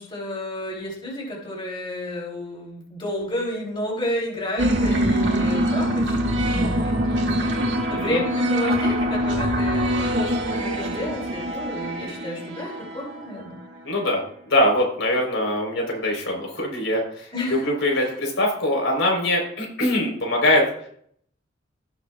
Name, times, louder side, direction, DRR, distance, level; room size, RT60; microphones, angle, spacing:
voice 1, 0.0-13.6 17.3-17.6 17.9-18.1, left 1 dB, 25° left, -3 dB, 3.1 m, -31 dB
sound 1, 4.6-13.6, equal, 65° right, 2.0 m, -24 dB
voice 2, 13.8-20.7, left 1 dB, 75° left, 0 dB, 3.9 m, -23 dB
17.5 x 7.0 x 2.4 m, 0.62 s
head